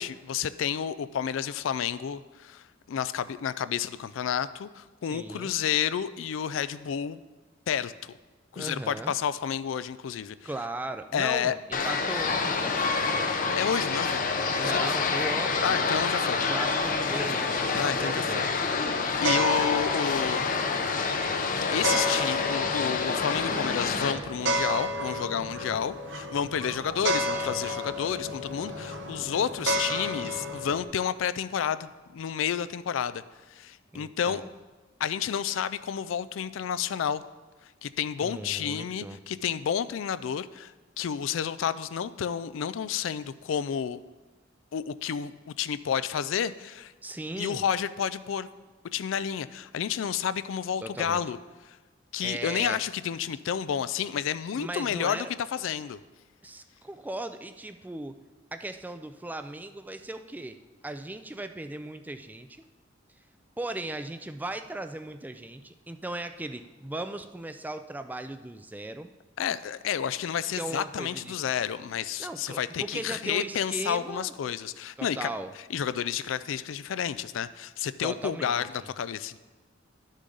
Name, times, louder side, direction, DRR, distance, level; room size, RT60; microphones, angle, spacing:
voice 1, 0.0-7.2 7.7-8.1 8.5-10.5 11.1-11.5 13.5-14.9 15.6-16.4 17.7-18.5 18.9-19.0 19.2-20.5 21.4-33.2 33.5-34.4 35.0-37.2 37.8-44.0 44.7-46.9 47.4-48.5 48.9-51.4 51.7-51.8 52.1-55.3 55.5-56.0 69.4-75.3 75.7-78.7 79.0-79.4, left 8 dB, 80° left, 15 dB, 0.4 m, -30 dB
voice 2, 5.1-5.5 8.5-9.1 10.4-12.9 14.6-16.0 16.5-18.5 33.9-34.5 38.2-39.2 47.0-47.6 50.8-51.2 52.2-52.8 54.6-55.3 56.4-58.2 58.5-60.6 60.8-62.6 63.6-69.1 70.6-71.3 72.2-74.3 75.0-75.5 78.0-78.9, right 2 dB, 10° right, 9 dB, 0.3 m, -37 dB
sound 1, 11.7-24.1, left 4 dB, 45° left, 0.6 m, -28 dB
sound 2, 11.8-30.8, equal, 65° right, 0.9 m, -34 dB
11.0 x 6.4 x 3.9 m, 1.2 s
head